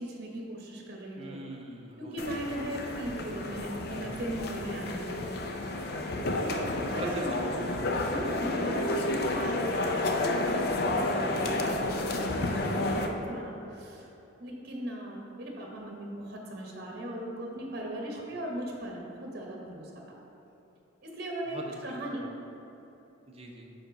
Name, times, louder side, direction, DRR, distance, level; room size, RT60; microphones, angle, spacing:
voice 1, 0.0-1.4 2.0-5.4 6.3-7.4 8.1-14.1 14.4-19.9 21.0-22.3, right 1 dB, 50° right, -1 dB, 1.0 m, -38 dB
voice 2, 1.2-2.4 6.3-7.7 11.0-11.6 18.1-18.2 21.5-21.6 22.0-22.1 23.3-23.7, right 1 dB, 30° right, 0 dB, 0.6 m, -43 dB
sound 1, 2.2-13.1, left 2 dB, 50° left, 0.4 m, -31 dB
5.1 x 4.8 x 5.1 m, 3.0 s
head